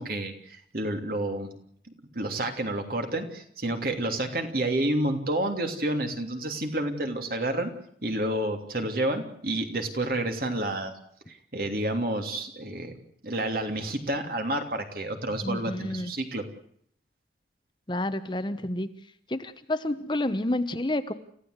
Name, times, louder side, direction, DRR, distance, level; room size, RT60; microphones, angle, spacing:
voice 1, 0.0-1.5 2.1-7.7 8.0-10.9 11.3-12.9 13.2-16.4, right 1 dB, 55° right, 5 dB, 3.0 m, -29 dB
voice 2, 15.4-16.1 17.9-18.9 19.3-21.1, left 1 dB, 25° left, 10 dB, 1.0 m, -29 dB
30.0 x 15.0 x 8.1 m, 0.65 s
head